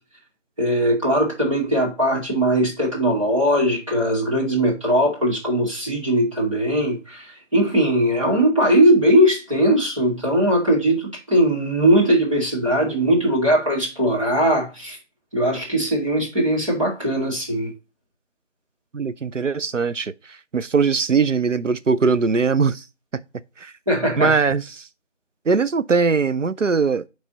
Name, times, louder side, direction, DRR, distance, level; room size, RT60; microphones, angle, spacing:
voice 1, 0.6-15.0 15.3-17.7 23.9-24.3, equal, 25° right, 2.3 m, -20 dB
voice 2, 18.9-20.1 20.5-22.8 23.6-23.7 24.2-24.9 25.5-27.0, right 5 dB, 90° right, 0.7 m, -20 dB
9.5 x 3.4 x 4.0 m
figure-of-eight pair, 170°, 36 cm